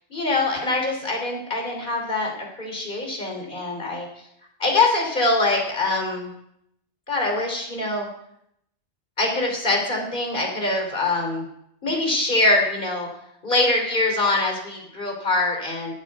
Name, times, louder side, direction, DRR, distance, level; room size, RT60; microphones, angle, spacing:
voice 1, 0.1-4.1 4.6-6.3 7.1-8.1 9.2-11.5 11.8-13.1 13.4-15.9, left 2 dB, 45° left, 1 dB, 3.4 m, -23 dB
12.0 x 7.6 x 9.1 m, 0.77 s
omnidirectional pair, 1.2 m